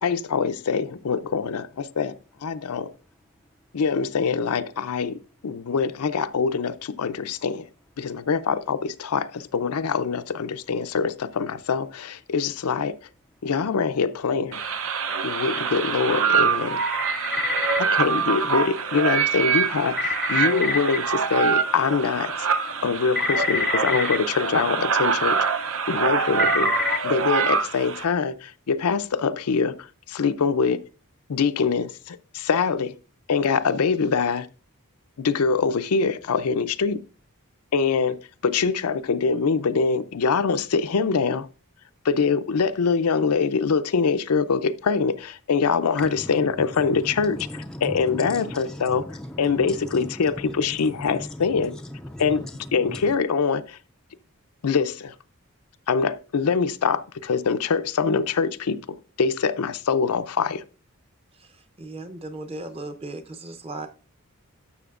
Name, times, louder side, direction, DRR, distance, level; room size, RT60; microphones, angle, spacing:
voice 1, 0.0-2.9 3.7-7.7 8.0-13.0 13.4-14.6 15.2-16.8 18.0-20.0 20.3-22.3 22.8-26.7 27.0-30.9 31.3-33.0 33.3-34.5 35.2-37.0 37.7-41.5 42.0-49.1 49.4-51.8 52.2-52.5 52.7-53.8 54.6-55.2 55.9-60.6, left 5 dB, 85° left, 0.5 m, -24 dB
sound 1, 14.5-28.0, right 6 dB, 65° right, 0.6 m, -25 dB
voice 2, 16.9-17.8 20.0-20.8 23.2-24.2 26.4-27.0 46.0-46.1 47.3-49.8 51.0-51.3 52.1-52.2, left 3 dB, 5° left, 0.3 m, -28 dB
voice 3, 61.3-63.9, right 2 dB, 25° right, 0.7 m, -37 dB
12.0 x 6.7 x 2.4 m
head